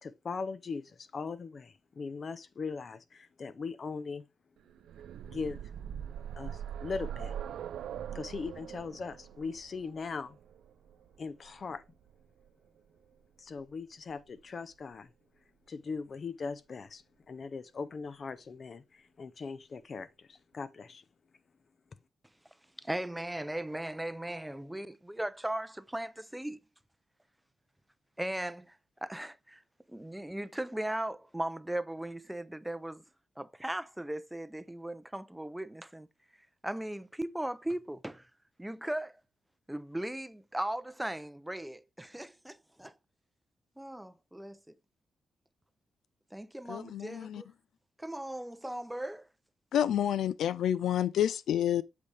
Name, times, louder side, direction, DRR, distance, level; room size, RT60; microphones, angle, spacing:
voice 1, 0.0-4.2 5.2-5.6 6.4-7.3 8.1-10.4 11.2-11.8 13.4-15.1 15.7-21.0, left 4 dB, 45° left, 0.7 m, -40 dB
sound 1, 4.7-12.5 13.6-13.7 14.1-14.2, right 9 dB, 90° right, 0.5 m, -42 dB
voice 2, 22.8-26.6 28.2-28.7 29.0-29.6 29.9-33.0 33.4-36.1 36.6-38.2 38.6-39.1 39.7-42.9 43.8-44.6 46.3-47.5 48.0-49.2, right 1 dB, 5° right, 0.5 m, -37 dB
voice 3, 46.7-47.4 49.7-51.8, left 10 dB, 85° left, 0.4 m, -29 dB
8.0 x 5.1 x 3.3 m
cardioid pair, 100°, 0 cm